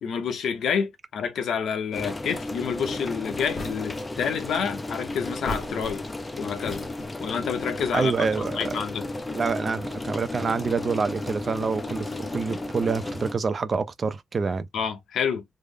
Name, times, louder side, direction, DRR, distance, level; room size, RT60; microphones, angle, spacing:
voice 1, 0.0-6.0 6.4-6.8 7.2-8.1 8.5-9.1 14.7-15.4, left 7 dB, 80° left, 0.9 m, -28 dB
sound 1, 1.9-13.3, left 2 dB, 15° left, 0.5 m, -34 dB
sound 2, 3.4-4.2 5.2-6.3 6.6-7.3, left 2 dB, 45° left, 1.1 m, -38 dB
voice 2, 7.9-8.8 9.3-14.7, right 5 dB, 35° right, 0.5 m, -27 dB
3.3 x 2.1 x 3.7 m
wide cardioid pair, 170°, 0 cm